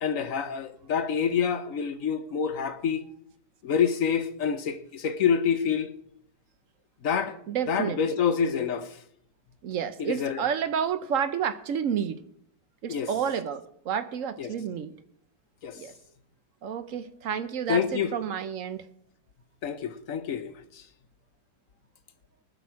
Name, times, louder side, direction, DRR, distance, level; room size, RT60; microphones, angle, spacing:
voice 1, 0.0-3.0 3.6-5.9 7.0-7.4 7.7-9.0 10.0-10.4 12.9-13.1 14.4-14.5 15.6-15.8 17.7-18.1 19.6-20.8, left 7 dB, 55° left, 1.1 m, -27 dB
voice 2, 7.5-8.2 9.6-12.2 12.8-14.9 15.7-15.9 16.6-18.9, right 8 dB, 60° right, 0.9 m, -30 dB
19.5 x 6.8 x 4.7 m
omnidirectional pair, 1.9 m